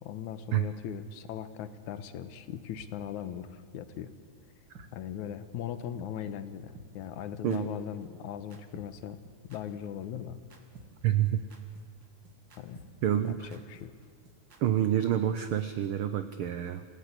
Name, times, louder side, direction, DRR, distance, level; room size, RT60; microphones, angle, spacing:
voice 1, 0.0-4.1 4.9-9.2 9.4-10.4 12.6-12.8 13.2-13.9, left 9 dB, 80° left, 11 dB, 2.4 m, -39 dB
sound 1, 2.8-2.9 3.2-3.4 3.7-3.8 4.3-4.4 4.7-4.9 5.2-5.4 5.7-5.8 6.3-6.4 6.7-14.6, right 3 dB, 40° right, 2.6 m, -53 dB
voice 2, 11.0-11.4 13.0-13.6 14.6-16.8, right 11 dB, 80° right, 10 dB, 1.2 m, -28 dB
27.5 x 16.5 x 8.2 m, 2.2 s
omnidirectional pair, 3.5 m